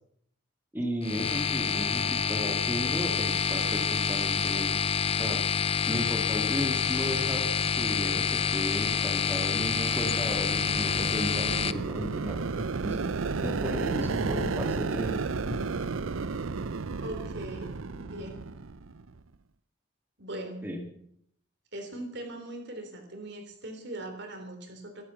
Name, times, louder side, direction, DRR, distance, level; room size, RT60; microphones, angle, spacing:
voice 1, 0.7-4.7 5.2-5.5 5.9-7.5 7.8-13.1 13.4-15.6 20.6-20.9, equal, 10° right, 1 dB, 2.0 m, -35 dB
sound 1, 1.0-11.7, left 6 dB, 30° left, 0.5 m, -27 dB
sound 2, 9.3-19.2, right 4 dB, 90° right, 0.7 m, -33 dB
voice 2, 17.0-18.4 20.2-20.6 21.7-25.0, right 1 dB, 55° right, 5 dB, 3.4 m, -40 dB
13.5 x 13.0 x 7.0 m, 0.69 s
head